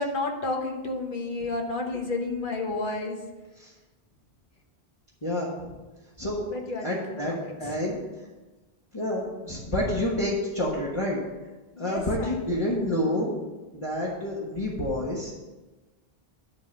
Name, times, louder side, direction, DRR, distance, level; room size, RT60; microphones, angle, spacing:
voice 1, 0.0-3.2 6.5-7.8 11.7-12.7, left 2 dB, 55° left, 2 dB, 1.3 m, -31 dB
voice 2, 5.2-5.8 6.2-6.4 6.8-8.0 8.9-11.2 11.8-13.3 13.7-15.3, left 1 dB, 30° left, -7 dB, 1.4 m, -28 dB
10.5 x 3.8 x 6.8 m, 1.2 s
omnidirectional pair, 1.0 m